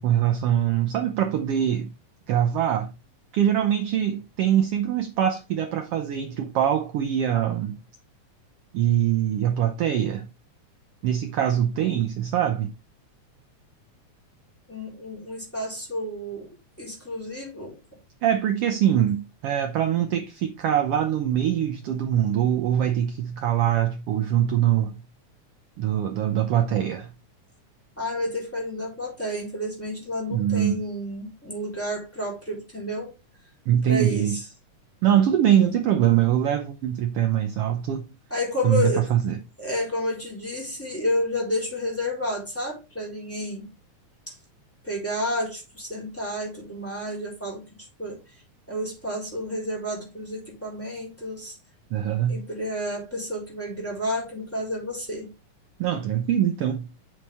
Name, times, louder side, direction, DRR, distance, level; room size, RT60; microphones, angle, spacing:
voice 1, 0.0-1.9 2.3-2.9 3.3-7.8 8.7-10.3 11.0-12.7 18.2-25.0 25.8-27.1 30.3-30.8 33.7-34.4 35.0-38.1 38.6-39.4 51.9-52.4 55.8-56.9, right 10 dB, 75° right, 1.4 m, -23 dB
voice 2, 14.7-17.8 28.0-33.1 33.8-34.4 38.3-39.1 39.6-43.7 44.3-44.4 44.8-47.6 48.0-48.2 48.7-51.5 52.3-55.3, left 1 dB, 5° left, 3.4 m, -30 dB
8.1 x 6.2 x 3.4 m
omnidirectional pair, 3.6 m